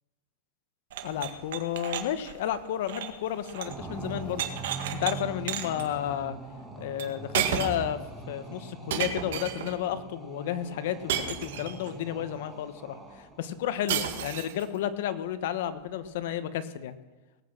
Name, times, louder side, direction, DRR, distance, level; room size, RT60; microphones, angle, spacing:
sound 1, 0.9-3.8 4.1-5.1 5.5-5.9 7.0-7.1 7.3-7.9 8.9-9.8 11.1-11.9 13.9-14.6, right 9 dB, 75° right, 1.8 m, -32 dB
voice 1, 1.0-4.4 5.0-6.4 6.8-8.0 8.3-17.0, left 10 dB, 65° left, 12 dB, 1.2 m, -32 dB
sound 2, 3.7-13.5, right 3 dB, 5° right, 2.4 m, -42 dB
18.5 x 8.7 x 6.1 m, 1.1 s
supercardioid pair, 165°, 0 cm